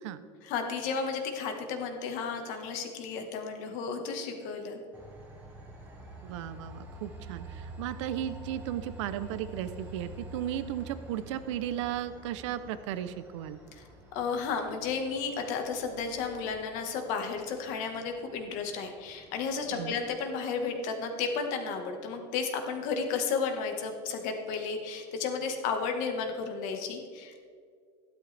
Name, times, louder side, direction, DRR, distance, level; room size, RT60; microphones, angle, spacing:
voice 1, 0.4-4.8 13.7-13.8 14.1-27.4, left 5 dB, 60° left, 4 dB, 1.6 m, -33 dB
Train, 4.9-20.1, right 1 dB, 15° right, 1.8 m, -48 dB
voice 2, 6.2-13.6 19.7-20.0, right 11 dB, 90° right, 13 dB, 0.7 m, -35 dB
13.0 x 11.5 x 3.4 m, 2.1 s
cardioid pair, 155°, 15 cm